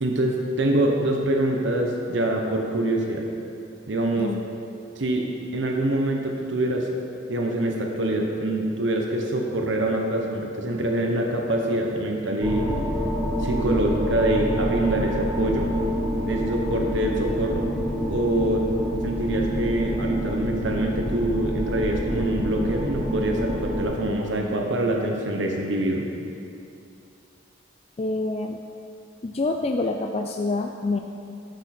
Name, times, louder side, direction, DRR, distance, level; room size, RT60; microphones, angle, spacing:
voice 1, 0.0-3.2 3.9-4.3 5.0-5.3 5.5-6.9 7.3-12.7 13.4-15.7 16.2-17.7 18.1-18.7 19.0-26.1, right 1 dB, 75° right, 1 dB, 1.0 m, -25 dB
sound 1, 12.4-23.9, equal, 5° right, 1.2 m, -27 dB
voice 2, 28.0-28.6 29.2-31.0, left 2 dB, 30° left, 3 dB, 0.3 m, -26 dB
13.0 x 6.4 x 4.3 m, 2.6 s
head